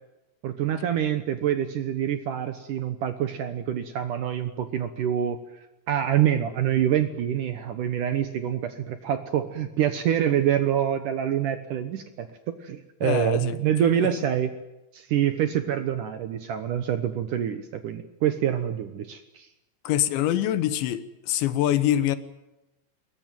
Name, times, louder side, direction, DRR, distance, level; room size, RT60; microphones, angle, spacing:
voice 1, 0.4-5.4 5.9-14.5 14.9-19.5, right 10 dB, 70° right, 9 dB, 2.0 m, -26 dB
voice 2, 13.0-13.6 14.0-14.1 19.9-22.2, left 12 dB, 85° left, 12 dB, 3.5 m, -24 dB
22.5 x 21.5 x 9.1 m, 0.97 s
omnidirectional pair, 5.1 m